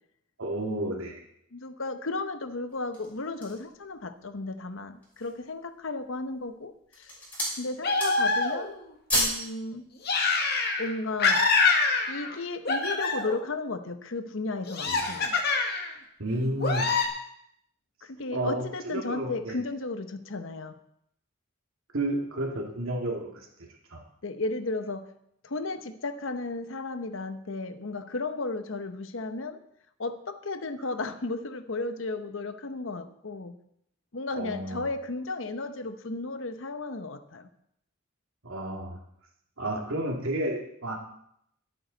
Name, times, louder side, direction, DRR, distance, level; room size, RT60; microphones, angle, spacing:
voice 1, 0.4-1.2 14.9-15.0 16.2-16.9 18.3-18.7 18.9-19.6 21.9-23.5 23.9-24.0 34.3-34.9 38.4-39.0 39.6-41.0, right 1 dB, 75° right, 1 dB, 2.4 m, -31 dB
voice 2, 1.5-7.2 7.6-8.8 9.1-9.8 10.8-11.5 12.1-15.4 18.0-20.8 24.2-25.1 25.4-29.6 30.0-33.6 34.1-37.5, left 3 dB, 65° left, 10 dB, 0.9 m, -34 dB
sound 1, 2.7-3.7 4.3-4.4 4.9-5.4 6.1-6.5 6.8-7.6 7.9-8.4 8.7-9.5 9.8-9.9, equal, 10° left, 6.4 m, -30 dB
sound 2, 7.8-8.8 10.0-10.9 11.2-12.4 12.6-13.5 14.7-15.9 16.6-17.0, left 4 dB, 50° left, 1.9 m, -25 dB
21.5 x 8.8 x 4.0 m, 0.73 s
head